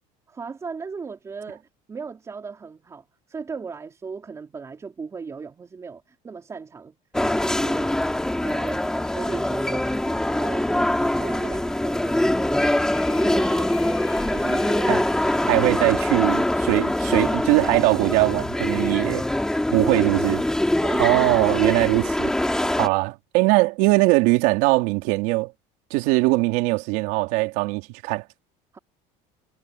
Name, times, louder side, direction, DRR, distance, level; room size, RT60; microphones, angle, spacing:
voice 1, 0.3-7.0 7.4-7.9 8.4-9.9 10.2-10.7 11.0-14.0 14.3-15.9 16.2-16.4 19.8-20.2 20.8-21.2 22.5-22.7 28.7-28.8, right 5 dB, 15° right, 3.9 m, -37 dB
sound 1, 7.1-22.9, left 1 dB, 5° left, 2.5 m, -23 dB
Doorbell, 12.6-19.1, left 18 dB, 50° left, 6.9 m, -48 dB
voice 2, 15.5-16.4 16.7-19.3 19.7-20.4 21.0-22.3 22.8-25.5 25.9-28.2, right 23 dB, 75° right, 3.5 m, -21 dB
cardioid pair, 165°, 17 cm